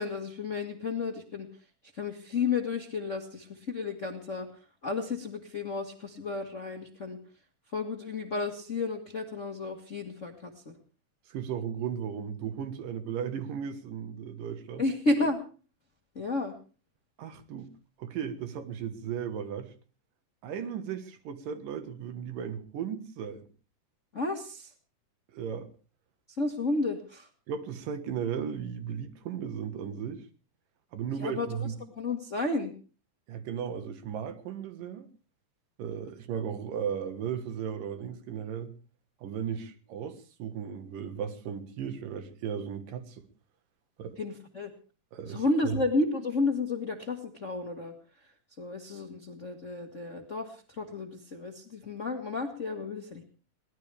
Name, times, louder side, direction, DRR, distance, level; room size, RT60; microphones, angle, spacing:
voice 1, 0.0-1.5 1.9-4.5 4.8-7.2 7.7-10.8 14.8-15.4 16.1-16.5 24.1-24.7 26.4-27.3 31.2-31.7 32.0-32.7 44.2-44.7 45.2-48.3 48.6-53.2, left 3 dB, 45° left, 1.0 m, -32 dB
voice 2, 11.3-14.8 17.2-17.7 18.0-19.7 20.4-23.4 25.3-25.7 27.5-30.2 30.9-31.7 33.3-35.1 35.8-38.7 39.2-43.2 44.0-44.2 45.1-45.8, right 8 dB, 85° right, 3.1 m, -36 dB
22.5 x 18.0 x 3.4 m
omnidirectional pair, 3.8 m